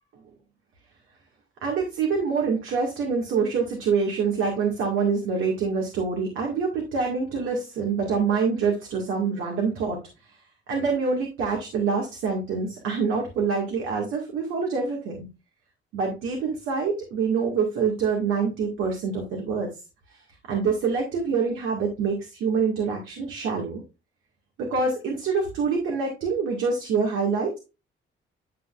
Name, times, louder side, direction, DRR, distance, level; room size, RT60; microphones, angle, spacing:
voice 1, 1.6-10.0 10.3-10.4 10.7-15.3 15.9-19.8 20.1-20.2 20.5-23.8 24.6-27.6, right 5 dB, 85° right, 1 dB, 2.0 m, -26 dB
11.0 x 5.8 x 2.5 m, 0.29 s
cardioid pair, 90°, 20 cm